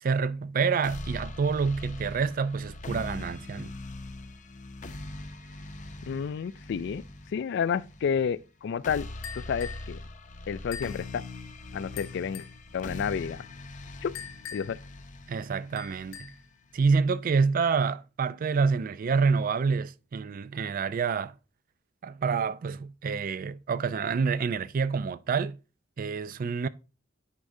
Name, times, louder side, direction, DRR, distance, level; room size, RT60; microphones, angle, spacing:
voice 1, 0.0-3.7 15.3-16.3 16.7-21.3 22.0-25.6 26.0-26.7, right 5 dB, 45° right, 0.4 m, -27 dB
sound 1, 0.8-16.8, left 2 dB, 40° left, 0.7 m, -42 dB
voice 2, 6.1-7.0 7.3-9.1 9.3-10.0 10.5-11.2 11.7-12.5 12.7-13.4 14.0-14.1 14.5-14.8, left 7 dB, 65° left, 0.3 m, -30 dB
sound 2, 9.2-9.9 10.7-11.0 12.0-12.6 14.1-14.9 15.8-16.5, left 7 dB, 80° left, 0.7 m, -43 dB
9.5 x 4.8 x 2.6 m
head